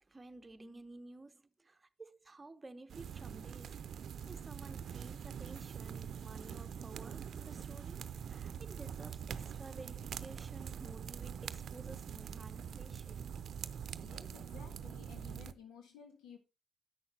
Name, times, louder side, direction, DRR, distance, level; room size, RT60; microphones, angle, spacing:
voice 1, 0.0-3.8 4.3-13.4, right 2 dB, 25° right, 0.9 m, -53 dB
sound 1, 2.9-15.5, right 8 dB, 70° right, 0.6 m, -44 dB
voice 2, 14.0-16.4, left 7 dB, 90° left, 1.6 m, -54 dB
8.7 x 6.3 x 4.3 m
cardioid pair, 75°, 0 cm